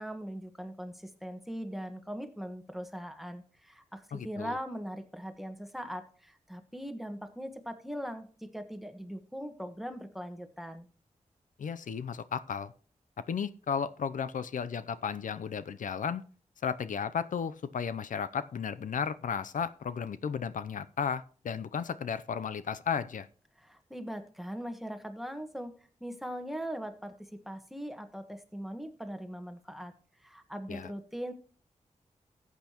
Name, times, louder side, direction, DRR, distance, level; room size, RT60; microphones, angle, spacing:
voice 1, 0.0-10.9 23.6-25.7 26.0-29.9 30.2-31.3, equal, ahead, 8 dB, 1.3 m, -40 dB
voice 2, 4.1-4.6 11.6-12.7 13.3-16.2 16.6-23.3 30.7-30.9, left 7 dB, 85° left, 13 dB, 0.5 m, -34 dB
14.5 x 8.4 x 2.9 m, 0.41 s
wide cardioid pair, 70°, 13 cm